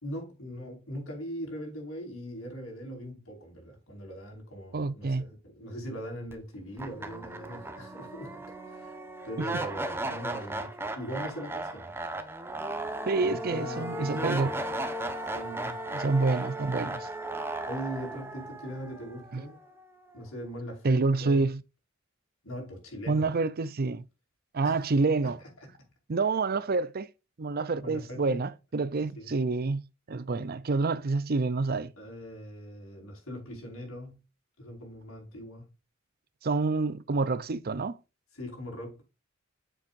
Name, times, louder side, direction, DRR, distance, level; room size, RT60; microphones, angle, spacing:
voice 1, 0.0-9.0 9.2-11.9 13.2-14.6 15.2-15.8 17.7-19.6 20.1-21.5 22.4-23.3 24.6-24.9 25.2-25.7 27.8-28.5 29.2-29.3 32.0-34.2 34.6-35.7 38.3-39.0, equal, 85° left, 4.9 m, -40 dB
voice 2, 4.7-5.2 13.1-14.5 15.9-17.1 19.3-19.4 20.8-21.6 23.1-24.0 24.5-25.4 26.1-27.1 27.4-29.8 30.1-31.9 36.4-38.0, right 3 dB, 50° right, 0.6 m, -27 dB
sound 1, 6.3-6.4 6.8-19.8, right 1 dB, 10° right, 1.1 m, -36 dB
8.7 x 7.3 x 2.6 m
head